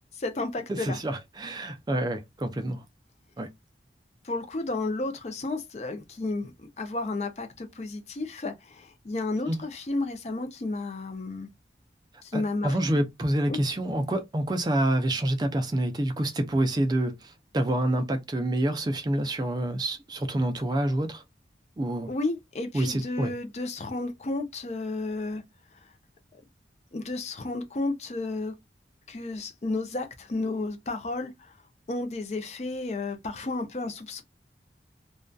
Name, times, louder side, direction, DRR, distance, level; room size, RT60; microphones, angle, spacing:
voice 1, 0.1-1.0 4.2-11.5 12.2-12.8 13.5-13.6 22.1-25.4 25.7-25.8 26.9-28.5 29.1-31.5 31.9-34.2, left 2 dB, 40° left, 0.5 m, -32 dB
voice 2, 0.7-2.8 3.4-3.5 9.5-9.6 12.3-21.2 21.8-22.1 22.7-23.3, right 1 dB, 25° right, 0.4 m, -27 dB
2.5 x 2.2 x 2.2 m
head